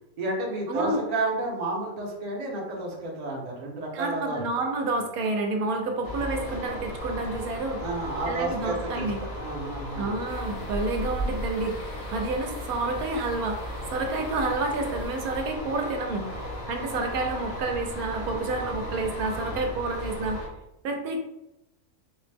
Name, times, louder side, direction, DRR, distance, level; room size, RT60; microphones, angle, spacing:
voice 1, 0.2-4.4 7.8-10.1, right 2 dB, 40° right, -2 dB, 0.6 m, -31 dB
voice 2, 0.7-1.0 3.9-7.8 8.3-9.2 10.0-16.3 16.7-20.4 20.8-21.2, right 3 dB, 80° right, 3 dB, 1.1 m, -29 dB
sound 1, 6.0-20.5, left 1 dB, 70° left, 1.1 m, -36 dB
sound 2, 10.3-15.4, right 1 dB, 85° left, 1.5 m, -37 dB
4.0 x 2.0 x 3.3 m, 0.90 s
omnidirectional pair, 1.6 m